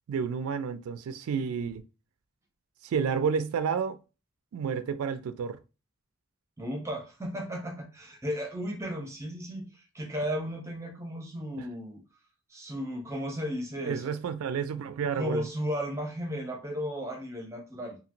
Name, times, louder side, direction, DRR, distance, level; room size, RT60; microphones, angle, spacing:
voice 1, 0.1-1.8 2.8-4.0 4.5-5.6 11.6-11.7 13.8-15.4, right 6 dB, 75° right, 0.3 m, -30 dB
voice 2, 6.6-12.0 12.5-14.1 15.1-18.0, equal, 15° right, 0.6 m, -35 dB
2.8 x 2.7 x 2.5 m
head